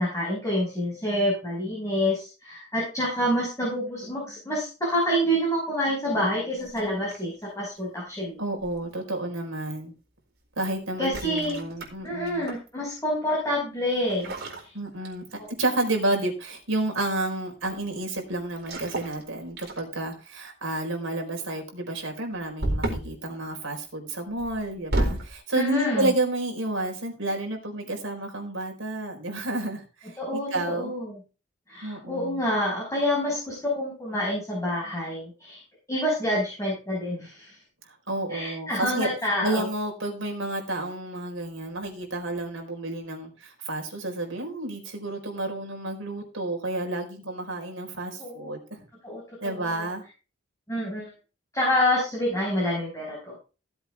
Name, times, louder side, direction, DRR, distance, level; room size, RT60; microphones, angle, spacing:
voice 1, 0.0-8.4 11.0-11.6 12.0-14.3 15.4-15.5 25.5-26.1 30.2-31.2 31.7-35.6 35.9-37.5 38.3-39.7 48.2-48.6 49.0-49.9 50.7-51.1 51.5-53.4, equal, 15° left, -5 dB, 5.6 m, -27 dB
sound 1, 6.7-7.4 8.6-9.0 11.0-12.7 14.1-15.5 15.8-16.1 18.6-19.2 19.6-20.1 22.6-23.2 24.4-25.3, right 1 dB, 55° right, 4.5 m, -31 dB
voice 2, 8.4-9.9 10.6-12.4 14.7-15.2 15.6-30.9 31.8-32.4 38.1-48.8 49.4-50.0, right 2 dB, 70° right, 2 dB, 4.4 m, -30 dB
16.5 x 8.0 x 3.5 m, 0.33 s
head